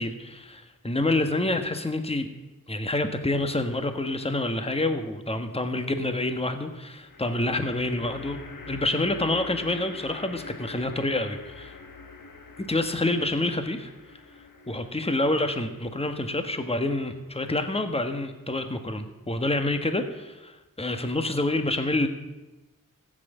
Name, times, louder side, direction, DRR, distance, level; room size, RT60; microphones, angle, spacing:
voice 1, 0.0-2.3 2.7-8.4 8.7-11.7 12.6-13.9 14.7-22.1, left 2 dB, 15° left, 7 dB, 1.5 m, -27 dB
sound 1, 3.9-4.6 7.0-18.4, left 4 dB, 70° left, 1.6 m, -46 dB
15.0 x 7.9 x 9.2 m, 1.1 s
cardioid pair, 50°, 34 cm